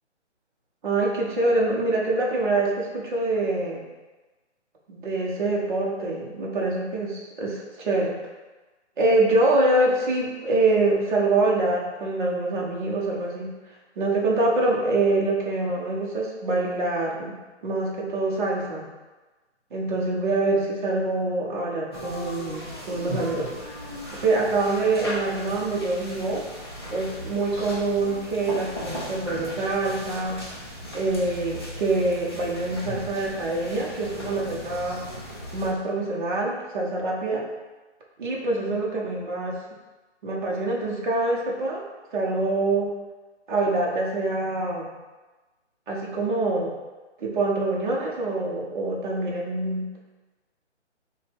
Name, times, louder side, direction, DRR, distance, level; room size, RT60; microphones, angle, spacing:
voice 1, 0.8-3.9 4.9-8.2 9.0-13.6 14.0-18.9 19.7-23.8 24.2-26.4 26.9-30.5 30.9-35.0 35.5-37.4 38.2-39.6 40.2-41.8 42.1-42.9 43.5-44.9 45.9-46.7 47.2-49.9, right 2 dB, 45° right, -3 dB, 0.8 m, -25 dB
sound 1, 21.9-35.7, equal, 20° left, 0.4 m, -37 dB
5.5 x 2.2 x 3.3 m, 1.2 s
hypercardioid pair, 160°, 36 cm